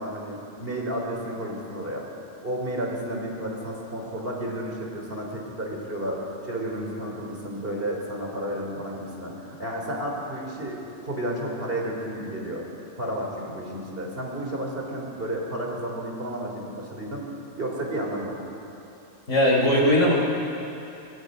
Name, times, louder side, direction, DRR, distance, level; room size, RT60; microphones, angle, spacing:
voice 1, 0.0-2.1 2.4-12.7 13.0-17.3 17.6-18.5, right 1 dB, 50° right, -1 dB, 3.6 m, -32 dB
voice 2, 19.3-20.1, left 1 dB, 80° left, -2 dB, 4.6 m, -19 dB
24.5 x 21.5 x 5.4 m, 2.9 s
omnidirectional pair, 1.3 m